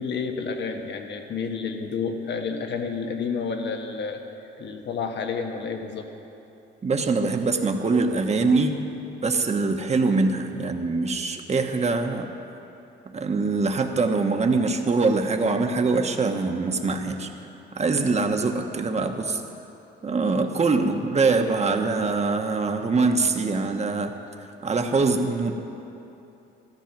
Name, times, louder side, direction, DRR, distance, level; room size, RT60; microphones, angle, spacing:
voice 1, 0.0-4.2 4.6-6.1, left 5 dB, 60° left, 4 dB, 1.5 m, -30 dB
voice 2, 6.8-8.8 9.2-12.3 13.1-17.3 17.7-19.4 20.0-24.1 24.6-25.5, right 3 dB, 35° right, 5 dB, 1.2 m, -23 dB
13.5 x 13.5 x 5.9 m, 2.9 s
cardioid pair, 90°, 20 cm